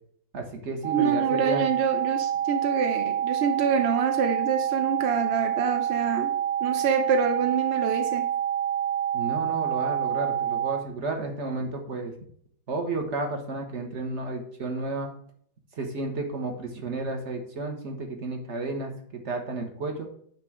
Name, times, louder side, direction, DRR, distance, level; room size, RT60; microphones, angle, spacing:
voice 1, 0.3-1.6 9.1-12.1 12.7-15.1 15.8-18.9 19.2-20.1, right 3 dB, 45° right, 4 dB, 1.4 m, -32 dB
sound 1, 0.8-10.8, right 10 dB, 80° right, 1.3 m, -27 dB
voice 2, 0.9-6.3 6.6-8.2, right 6 dB, 60° right, 5 dB, 0.7 m, -26 dB
9.0 x 3.4 x 6.1 m, 0.62 s
omnidirectional pair, 2.0 m